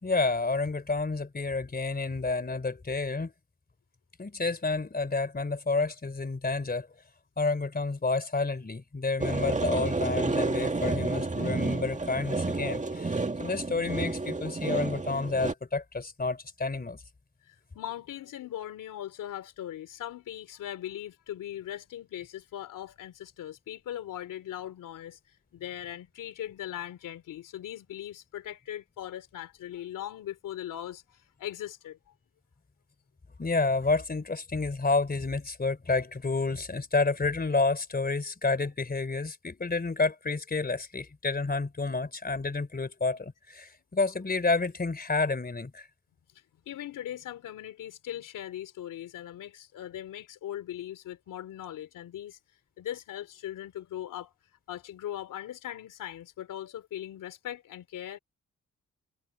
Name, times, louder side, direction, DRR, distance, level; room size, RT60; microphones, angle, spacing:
voice 1, 0.0-3.3 4.2-6.9 7.4-17.0 33.4-45.9, left 3 dB, 30° left, 3.4 m, -29 dB
sound 1, 9.2-15.5, right 3 dB, 25° right, 2.1 m, -30 dB
voice 2, 17.4-25.2 25.5-32.0 46.7-52.4 52.8-54.3 54.7-58.2, left 11 dB, 80° left, 3.2 m, -39 dB
supercardioid pair, 55°, 31 cm